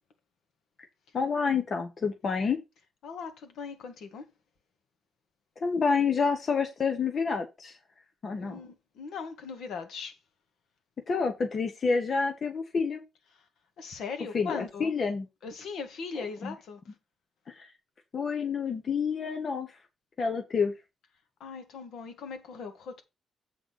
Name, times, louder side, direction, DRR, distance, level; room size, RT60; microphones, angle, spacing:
voice 1, 1.1-2.6 5.6-7.7 8.2-8.6 11.1-13.0 14.3-15.3 16.2-16.5 17.6-17.7 18.1-19.7 20.2-20.7, left 5 dB, 35° left, 1.1 m, -28 dB
voice 2, 3.0-4.3 8.4-10.1 13.8-14.9 15.4-16.8 21.4-23.0, left 5 dB, 80° left, 1.9 m, -39 dB
7.9 x 3.8 x 6.3 m
wide cardioid pair, 180°, 0 cm